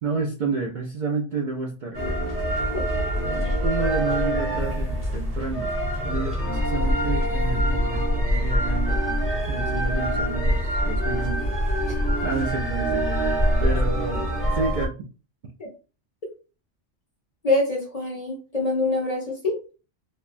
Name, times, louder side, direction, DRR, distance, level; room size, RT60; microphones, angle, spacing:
voice 1, 0.0-2.2 3.6-5.7 6.0-9.1 9.5-11.5 12.2-15.0, right 4 dB, 65° right, 0 dB, 0.5 m, -30 dB
sound 1, 1.9-14.9, equal, 10° right, 0.9 m, -24 dB
voice 2, 17.4-19.5, left 2 dB, 40° left, -1 dB, 0.6 m, -25 dB
3.4 x 2.1 x 2.5 m, 0.35 s
omnidirectional pair, 1.2 m